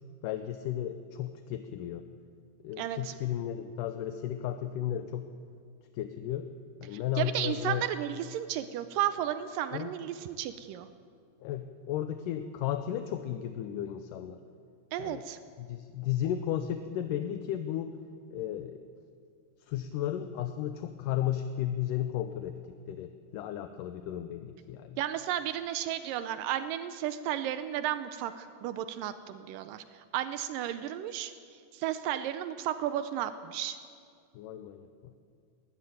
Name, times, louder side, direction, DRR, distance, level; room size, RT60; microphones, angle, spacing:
voice 1, 0.2-2.1 2.6-5.3 5.9-6.5 6.8-7.9 9.7-9.9 11.4-14.4 15.0-15.2 15.6-17.9 18.3-18.8 19.7-22.6 22.9-25.0 34.4-35.1, left 11 dB, 80° left, 8 dB, 2.3 m, -34 dB
voice 2, 2.8-3.1 6.9-10.9 14.9-15.4 25.0-29.8 30.1-31.3 31.7-33.8, right 11 dB, 85° right, 10 dB, 2.3 m, -33 dB
20.5 x 13.5 x 9.4 m, 2.2 s
omnidirectional pair, 3.9 m